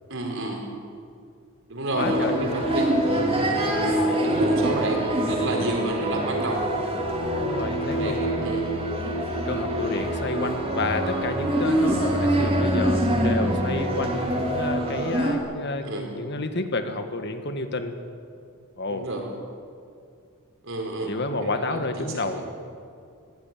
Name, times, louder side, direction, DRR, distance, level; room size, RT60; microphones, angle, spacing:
voice 1, 0.1-0.7 1.7-3.7 4.2-6.6 8.0-8.7 15.8-16.1 18.9-19.2 20.6-21.1 21.4-22.4, right 1 dB, 65° right, 1 dB, 4.9 m, -30 dB
voice 2, 1.9-2.6 7.3-8.3 9.4-18.0 18.8-19.1 21.1-22.5, left 2 dB, 50° left, 7 dB, 1.7 m, -30 dB
sound 1, 2.0-15.3, right 1 dB, 25° right, 3.4 m, -25 dB
21.5 x 16.5 x 9.2 m, 2.3 s
head